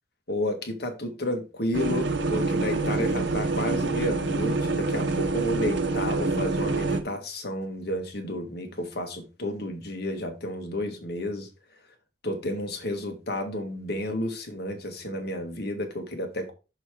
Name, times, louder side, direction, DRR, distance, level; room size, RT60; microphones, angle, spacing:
voice 1, 0.3-11.5 12.2-16.5, left 1 dB, 60° left, 1.9 m, -31 dB
sound 1, 1.7-7.0, right 3 dB, 80° right, 1.1 m, -26 dB
6.4 x 5.7 x 4.9 m
head